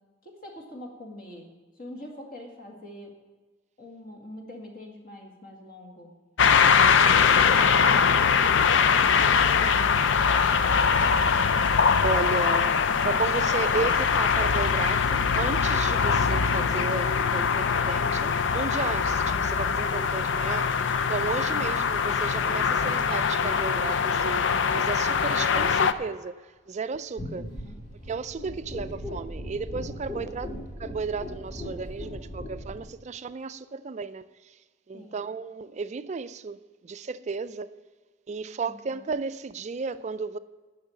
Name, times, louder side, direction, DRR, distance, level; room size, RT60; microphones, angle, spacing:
voice 1, 0.2-3.2 3.8-6.2 6.4-6.8 21.6-21.9 27.4-27.8 30.3-30.6 34.9-35.2 38.7-39.1, left 1 dB, 45° left, 2.1 m, -44 dB
sound 1, 6.4-25.9, left 6 dB, 65° left, 0.5 m, -22 dB
voice 2, 12.0-27.5 28.1-34.6 34.9-37.8 38.3-40.4, right 4 dB, 35° right, 0.3 m, -34 dB
sound 2, 27.2-32.8, equal, 30° left, 3.5 m, -38 dB
10.5 x 6.4 x 8.6 m
head